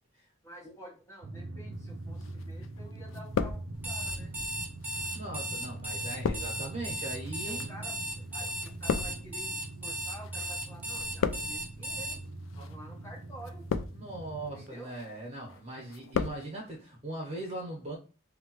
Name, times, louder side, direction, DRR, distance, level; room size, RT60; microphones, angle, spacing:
voice 1, 0.4-4.4 7.4-12.2 12.5-13.7 14.5-14.9 15.7-15.9, equal, 15° left, 1.0 m, -50 dB
Drum, 1.2-14.7, right 2 dB, 80° right, 0.4 m, -43 dB
sound 1, 2.2-2.8 3.1-4.1 4.8-10.5 10.7-11.8 12.5-12.8 13.4-14.2 14.7-15.1 15.5-16.4 16.7-16.8, left 6 dB, 80° left, 0.3 m, -35 dB
Alarm, 3.7-12.2, right 1 dB, 10° right, 0.6 m, -36 dB
voice 2, 5.1-7.7 13.9-18.0, right 1 dB, 35° right, 1.1 m, -40 dB
3.2 x 2.2 x 3.0 m
head